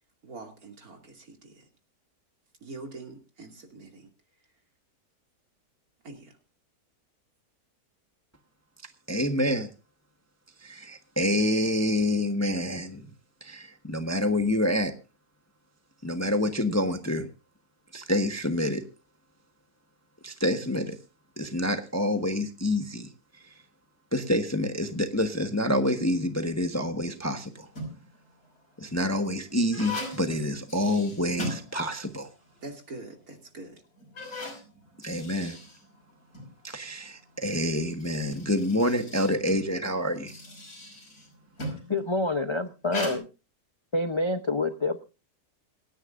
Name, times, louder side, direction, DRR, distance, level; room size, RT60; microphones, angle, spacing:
voice 1, 0.2-1.7 2.6-4.1 6.0-6.4 32.6-33.8, right 3 dB, 65° right, 3.1 m, -44 dB
voice 2, 9.1-9.7 10.6-13.0 13.4-14.9 16.0-17.3 17.9-18.8 20.2-21.0 21.4-23.1 24.1-27.7 28.8-32.3 35.0-35.6 36.6-40.3, left 1 dB, 10° left, 1.0 m, -27 dB
sound 1, 27.5-28.2 28.8-32.3 32.6-32.7 33.4-33.5 34.0-36.5 37.7-42.0 42.8-43.2, left 1 dB, 65° left, 6.2 m, -39 dB
voice 3, 41.9-43.3 43.9-45.0, left 2 dB, 30° left, 0.5 m, -27 dB
26.5 x 10.0 x 2.5 m
omnidirectional pair, 1.7 m